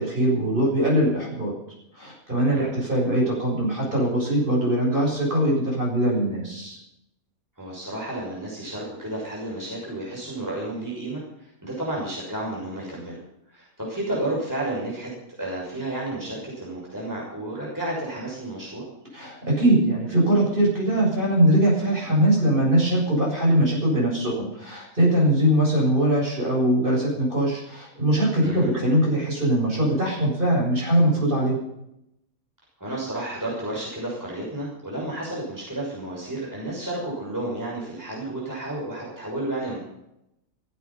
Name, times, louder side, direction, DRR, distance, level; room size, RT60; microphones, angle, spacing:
voice 1, 0.0-1.5 1.9-6.8 19.1-31.6, right 1 dB, 35° right, -3 dB, 7.9 m, -21 dB
voice 2, 7.6-13.2 13.5-15.1 15.4-18.8 28.4-28.7 32.8-39.8, right 1 dB, 10° right, -5 dB, 6.1 m, -31 dB
16.0 x 15.5 x 5.6 m, 0.81 s
omnidirectional pair, 1.5 m